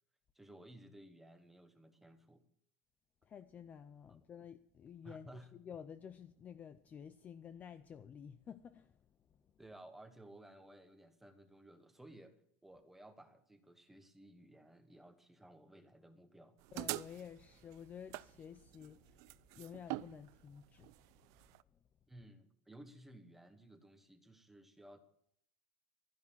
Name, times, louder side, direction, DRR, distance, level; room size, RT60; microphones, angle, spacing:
voice 1, 0.3-2.4 4.1-4.2 5.0-5.5 9.6-12.4 12.6-16.6 22.1-25.0, right 1 dB, 5° right, 1.2 m, -57 dB
voice 2, 3.3-8.9 16.7-19.2 19.6-20.9, left 8 dB, 20° left, 0.5 m, -52 dB
sound 1, 16.6-21.6, right 19 dB, 50° right, 0.4 m, -45 dB
13.5 x 10.5 x 7.3 m
supercardioid pair, 165°, 7 cm